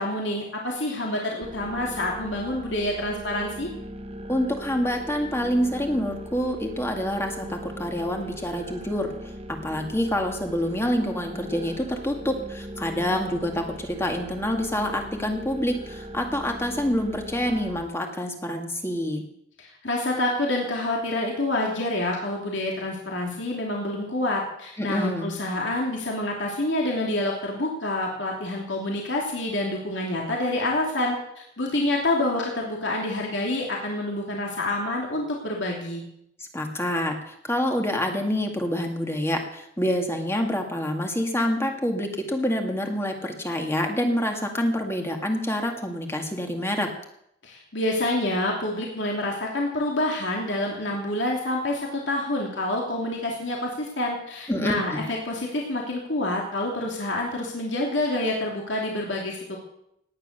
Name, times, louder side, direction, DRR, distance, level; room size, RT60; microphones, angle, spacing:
voice 1, 0.0-3.7 19.6-36.0 47.4-59.6, left 1 dB, 60° left, -1 dB, 2.9 m, -27 dB
sound 1, 1.4-17.8, equal, 30° right, 1.2 m, -39 dB
voice 2, 4.3-9.1 9.5-19.3 24.8-25.4 36.5-46.9 54.5-55.0, equal, 15° left, 3 dB, 2.0 m, -27 dB
18.0 x 9.8 x 6.7 m, 0.77 s
head